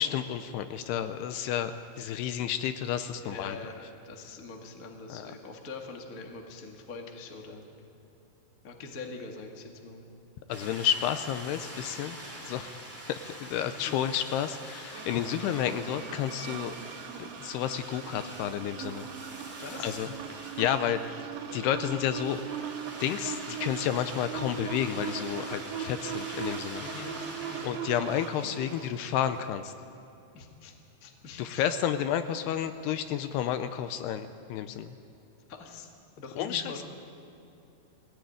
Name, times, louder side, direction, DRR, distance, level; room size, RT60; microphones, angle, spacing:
voice 1, 0.0-1.7 2.0-3.6 5.1-5.3 10.5-12.2 12.5-12.8 13.1-16.7 17.2-19.1 19.8-20.1 20.6-22.7 23.0-26.8 27.6-29.7 31.4-34.9 36.4-36.7, left 10 dB, 80° left, 10 dB, 2.5 m, -31 dB
voice 2, 3.1-7.7 8.6-10.1 13.5-14.0 19.6-19.9 26.8-27.2 27.5-27.8 30.3-30.7 31.0-31.7 35.5-35.9 36.2-36.8, left 4 dB, 60° left, 2 dB, 0.8 m, -43 dB
sound 1, 10.5-29.5, right 1 dB, 5° right, 1.2 m, -46 dB
sound 2, 14.9-28.9, right 7 dB, 80° right, 3.9 m, -39 dB
20.0 x 17.0 x 9.2 m, 2.9 s
omnidirectional pair, 5.1 m